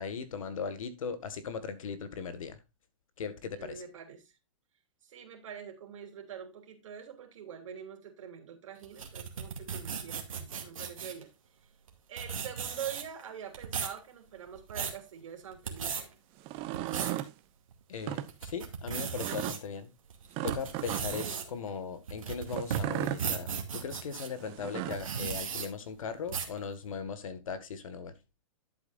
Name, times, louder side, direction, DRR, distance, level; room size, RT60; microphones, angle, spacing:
voice 1, 0.0-2.6 3.2-3.8 17.9-19.9 20.4-28.1, left 6 dB, 80° left, 1.7 m, -38 dB
voice 2, 3.5-4.3 5.0-11.3 12.1-16.2 21.2-21.6, right 8 dB, 70° right, 3.2 m, -45 dB
sound 1, 8.8-11.2 11.9-12.0 12.2-13.2 13.5-14.0 14.5-15.0 15.5-16.0 16.6-17.2 17.7-17.8 18.3-19.6 20.1-24.3 24.8-25.7 26.3-26.6, right 7 dB, 90° right, 2.3 m, -36 dB
sound 2, 16.4-17.3 17.9-18.3 19.2-19.6 20.3-21.3 22.5-23.2 24.4-25.1, right 14 dB, 35° right, 0.8 m, -35 dB
11.5 x 7.8 x 2.5 m
hypercardioid pair, 135°, 17 cm